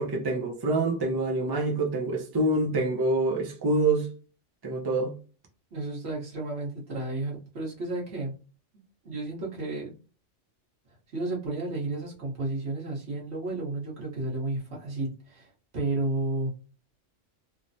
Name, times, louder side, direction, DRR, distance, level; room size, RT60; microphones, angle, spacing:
voice 1, 0.0-4.1 4.6-5.1, right 2 dB, 30° right, 0.4 m, -26 dB
voice 2, 5.7-8.3 9.0-9.9 11.1-16.6, right 2 dB, 60° right, 1.3 m, -32 dB
3.2 x 2.1 x 2.6 m
omnidirectional pair, 1.3 m